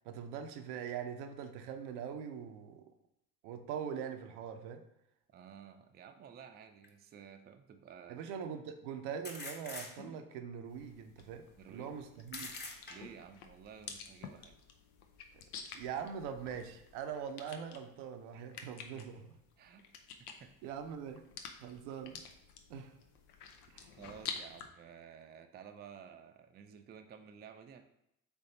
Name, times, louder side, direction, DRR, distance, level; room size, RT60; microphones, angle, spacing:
voice 1, 0.0-2.9 3.4-4.8 8.1-12.5 15.7-19.4 20.6-21.2 21.6-22.2 22.7-22.9 23.7-23.9, right 7 dB, 65° right, 7 dB, 0.6 m, -42 dB
voice 2, 5.3-8.2 11.5-11.9 12.9-14.6 19.6-19.9 20.4-20.7 24.0-27.8, right 7 dB, 25° right, 6 dB, 0.4 m, -53 dB
sound 1, 6.8-6.9 9.2-10.3 12.3-13.3, left 2 dB, 25° left, 0.9 m, -45 dB
sound 2, 10.7-24.7, left 6 dB, 80° left, 0.6 m, -50 dB
3.7 x 3.5 x 3.8 m, 0.80 s
figure-of-eight pair, 45°, 44 cm